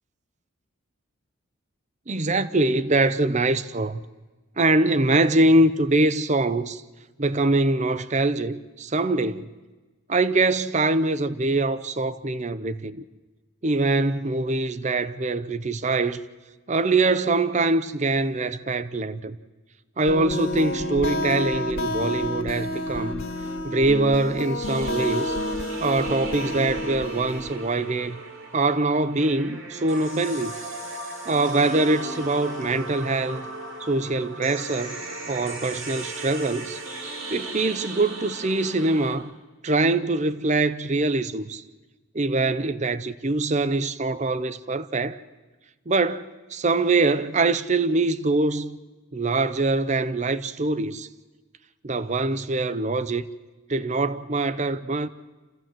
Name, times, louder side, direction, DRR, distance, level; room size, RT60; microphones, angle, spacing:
voice 1, 2.1-4.0 4.6-6.8 7.2-9.5 10.1-13.0 13.6-16.2 16.7-19.4 20.0-23.2 23.6-25.4 25.8-28.2 28.5-30.5 31.3-33.5 33.8-35.0 35.3-36.8 37.3-39.3 39.6-41.6 42.1-45.2 45.9-48.8 49.1-51.1 51.8-53.2 53.7-55.1, right 2 dB, 35° right, 0.6 m, -23 dB
sound 1, 20.1-27.6, left 1 dB, 60° left, 2.0 m, -29 dB
sound 2, 24.6-39.1, right 2 dB, 60° right, 3.9 m, -37 dB
27.5 x 15.5 x 7.5 m
head